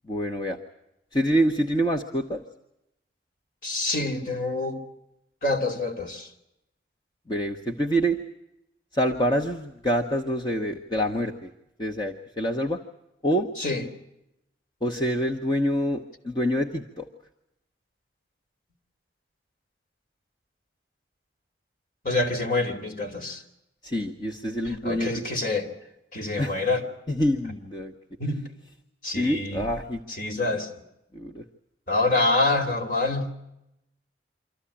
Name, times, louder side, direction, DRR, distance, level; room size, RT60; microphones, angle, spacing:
voice 1, 0.1-0.6 1.1-2.4 7.3-8.2 8.9-11.5 11.8-12.8 13.2-13.5 14.8-17.1 23.8-25.1 26.4-26.6 27.1-27.9 29.1-30.0 31.1-31.4, equal, 25° left, 1.1 m, -26 dB
voice 2, 3.6-4.8 5.4-6.3 13.6-13.8 22.0-23.4 24.6-25.7 26.1-26.8 28.2-28.4 29.0-29.7 30.1-30.7 31.9-33.3, left 2 dB, 50° left, 2.9 m, -26 dB
26.0 x 14.5 x 10.0 m
head